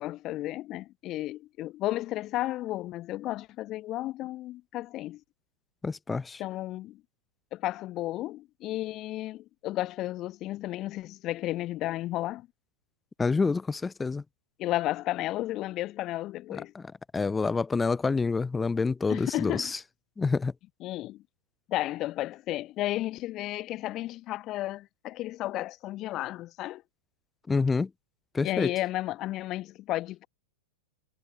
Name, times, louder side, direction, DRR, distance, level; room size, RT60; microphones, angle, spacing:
voice 1, 0.0-5.2 6.4-7.0 7.5-12.5 14.6-16.7 19.1-19.7 20.8-21.2 21.7-26.8 28.4-30.3, left 15 dB, 35° left, 1.9 m, -33 dB
voice 2, 5.8-6.4 13.2-14.2 16.5-16.8 17.1-19.8 20.2-20.5 27.5-27.9 28.3-28.7, left 4 dB, 10° left, 2.0 m, -27 dB
figure-of-eight pair, 95°, 0 cm